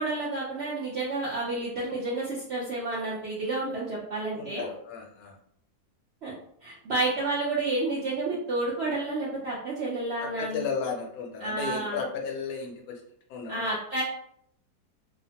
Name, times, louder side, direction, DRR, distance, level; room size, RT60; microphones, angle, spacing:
voice 1, 0.0-4.7 6.2-6.3 6.6-10.7 11.4-12.0 13.5-14.0, right 2 dB, 65° right, -6 dB, 0.6 m, -30 dB
voice 2, 4.3-5.3 10.2-13.0 13.3-13.6, left 5 dB, 75° left, 1 dB, 1.1 m, -34 dB
2.8 x 2.1 x 2.7 m, 0.69 s
omnidirectional pair, 1.7 m